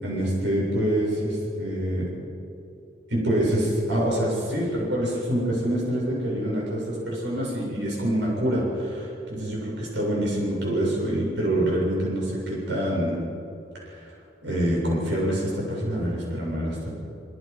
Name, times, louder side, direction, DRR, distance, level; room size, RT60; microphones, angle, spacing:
voice 1, 0.0-2.1 3.1-13.2 13.9-14.1 14.4-16.9, right 1 dB, 75° right, -3 dB, 7.7 m, -26 dB
27.0 x 24.0 x 5.6 m, 2.6 s
head